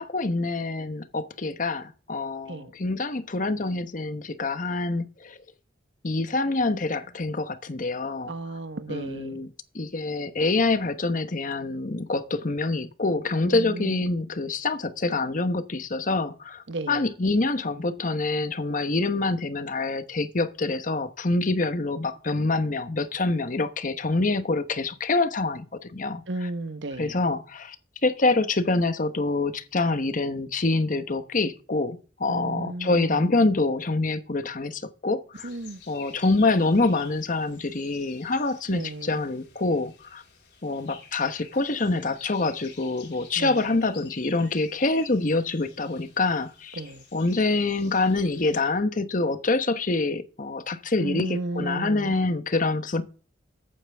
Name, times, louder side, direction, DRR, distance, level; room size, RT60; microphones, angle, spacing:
voice 1, 0.0-5.4 6.0-8.3 8.9-9.5 9.7-26.2 27.0-27.8 28.0-35.5 35.9-40.2 40.6-46.8 47.1-53.0, left 3 dB, 45° left, 1.1 m, -26 dB
voice 2, 8.3-9.4 13.4-14.0 16.7-17.1 26.3-27.2 32.3-33.3 35.4-35.8 38.7-39.2 43.4-43.7 46.8-47.0 51.0-52.2, right 2 dB, 80° right, 1.1 m, -34 dB
sound 1, 35.3-48.7, left 7 dB, 65° left, 4.5 m, -50 dB
14.5 x 9.1 x 3.5 m
head